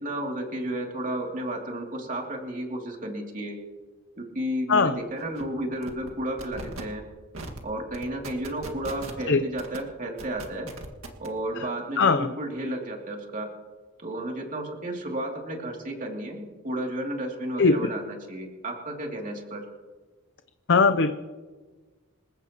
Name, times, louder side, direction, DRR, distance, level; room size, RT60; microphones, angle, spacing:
voice 1, 0.0-3.6 4.2-7.0 7.6-10.7 11.2-13.5 14.0-19.6, right 1 dB, 40° right, 0 dB, 2.8 m, -32 dB
sound 1, 4.8-4.9 5.2-5.4 5.8-6.1 6.4-6.8 7.3-7.6 7.9-9.2 9.6-9.8 10.2-11.3, right 2 dB, 85° right, 2.0 m, -39 dB
voice 2, 12.0-12.3 17.6-17.9 20.7-21.1, left 4 dB, 60° left, 8 dB, 0.7 m, -20 dB
27.0 x 15.5 x 3.0 m, 1.4 s
head